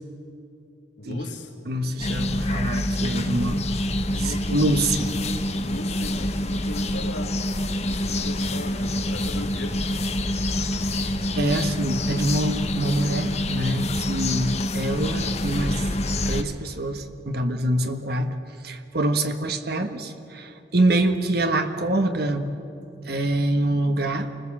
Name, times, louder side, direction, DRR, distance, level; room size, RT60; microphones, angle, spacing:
voice 1, 1.0-1.5 3.5-3.7 4.1-4.6 5.6-9.8, left 1 dB, 85° left, 1 dB, 2.9 m, -38 dB
voice 2, 1.6-5.1 11.3-15.9 16.2-18.4 18.6-22.5 23.0-24.3, right 1 dB, 60° right, 7 dB, 1.4 m, -25 dB
sound 1, 2.0-16.4, left 1 dB, 40° left, 1.1 m, -26 dB
28.5 x 20.5 x 7.3 m, 2.8 s
head